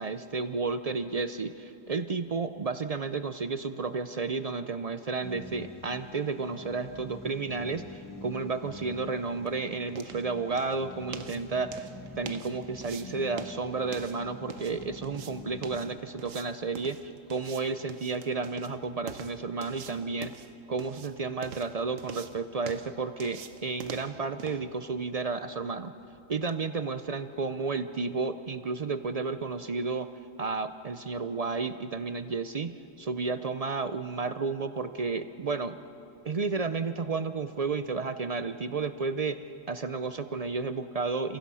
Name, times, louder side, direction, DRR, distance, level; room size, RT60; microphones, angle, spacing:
voice 1, 0.0-11.9 12.2-17.0 17.3-20.3 20.7-25.9 26.3-30.1 30.4-35.8 36.3-39.4 39.7-41.4, right 4 dB, 50° right, 11 dB, 0.4 m, -32 dB
sound 1, 5.2-16.0, left 1 dB, 20° left, 0.9 m, -46 dB
sound 2, 8.8-26.6, right 7 dB, 80° right, 1.3 m, -46 dB
30.0 x 15.5 x 5.6 m, 2.8 s
omnidirectional pair, 1.3 m